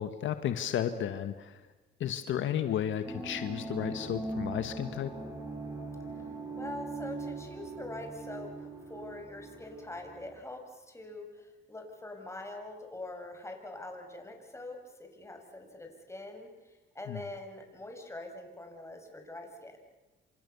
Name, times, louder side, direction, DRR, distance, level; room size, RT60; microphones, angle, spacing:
voice 1, 0.0-1.6 2.0-5.1 17.1-17.2, left 10 dB, 75° left, 9 dB, 1.5 m, -33 dB
sound 1, 3.0-10.4, right 3 dB, 15° right, 6.6 m, -41 dB
voice 2, 6.6-19.8, left 2 dB, 15° left, 3 dB, 6.5 m, -44 dB
28.5 x 26.5 x 7.1 m, 1.1 s
cardioid pair, 90°, 20 cm